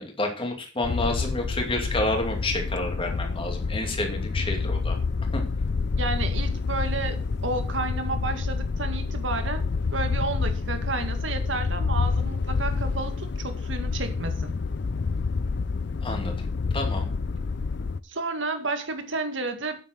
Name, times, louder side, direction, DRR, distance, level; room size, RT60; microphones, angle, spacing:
voice 1, 0.0-5.0 5.3-5.4 16.0-16.5 16.7-17.1, left 2 dB, 30° left, 2 dB, 2.6 m, -29 dB
sound 1, 0.8-18.0, left 4 dB, 60° left, 0.5 m, -28 dB
voice 2, 6.0-14.5 18.0-19.8, right 3 dB, 70° right, 7 dB, 2.0 m, -31 dB
9.3 x 7.6 x 6.3 m, 0.36 s
head